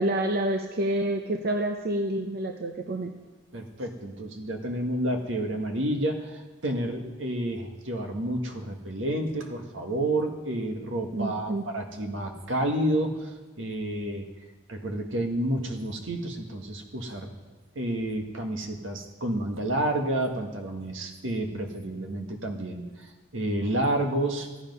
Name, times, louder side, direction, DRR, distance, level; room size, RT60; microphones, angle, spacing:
voice 1, 0.0-3.1 11.1-11.6, right 1 dB, 50° right, 4 dB, 0.7 m, -28 dB
voice 2, 3.5-14.2 14.7-17.3 17.7-24.5, right 1 dB, 80° right, 4 dB, 1.6 m, -30 dB
14.5 x 10.0 x 5.5 m, 1.2 s
head